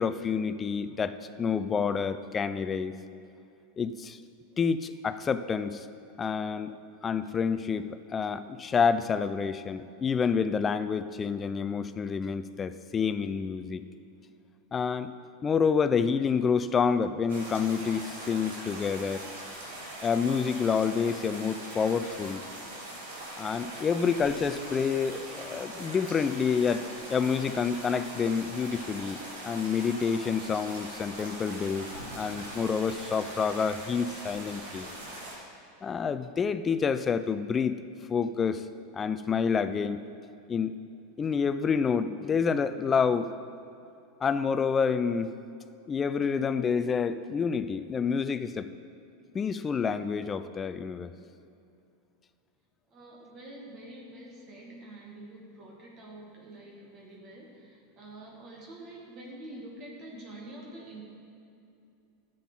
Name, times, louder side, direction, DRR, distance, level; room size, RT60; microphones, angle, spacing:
voice 1, 0.0-3.0 3.8-4.2 4.6-5.9 6.2-6.8 7.0-13.8 14.7-15.1 15.4-19.2 20.0-22.5 23.4-31.9 32.1-34.9 35.8-37.8 38.1-38.7 38.9-40.0 40.5-40.8 41.2-43.3 44.2-45.4 45.9-48.7 49.3-51.1, left 6 dB, 25° left, 12 dB, 0.5 m, -28 dB
sound 1, 17.3-35.4, right 1 dB, 80° right, 2.5 m, -42 dB
voice 2, 52.9-61.0, right 1 dB, 45° right, -2 dB, 1.8 m, -46 dB
12.0 x 7.7 x 3.8 m, 2.7 s
hypercardioid pair, 100°, 0 cm